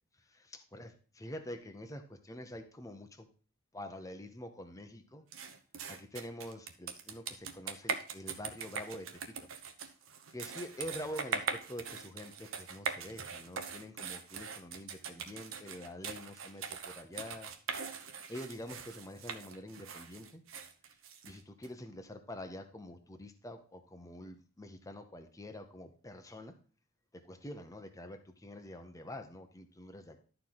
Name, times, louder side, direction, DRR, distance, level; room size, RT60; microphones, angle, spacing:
voice 1, 0.5-3.3 3.7-5.3 5.9-9.5 10.3-17.5 18.3-20.4 21.3-26.5 27.1-30.2, left 1 dB, 15° left, 6 dB, 0.9 m, -46 dB
sound 1, 5.3-21.7, right 5 dB, 70° right, 1.0 m, -41 dB
12.0 x 4.6 x 3.9 m, 0.40 s
head